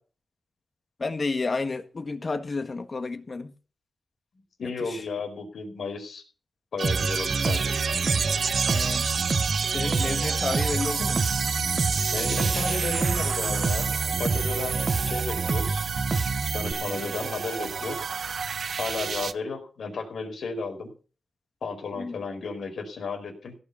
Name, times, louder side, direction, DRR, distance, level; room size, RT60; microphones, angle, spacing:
voice 1, 1.0-3.5 4.8-5.1 8.6-9.1 9.7-11.3 21.9-22.2, left 3 dB, 40° left, 1.6 m, -31 dB
voice 2, 4.6-6.2 6.7-7.7 12.1-13.9 14.2-15.8 16.5-18.1 18.8-20.9 21.6-23.5, left 4 dB, 75° left, 4.9 m, -33 dB
Bass guitar, 6.8-16.7, right 4 dB, 45° right, 1.3 m, -28 dB
sound 1, 6.8-19.3, right 5 dB, 65° right, 0.9 m, -29 dB
16.5 x 6.4 x 7.0 m
wide cardioid pair, 90°, 0 cm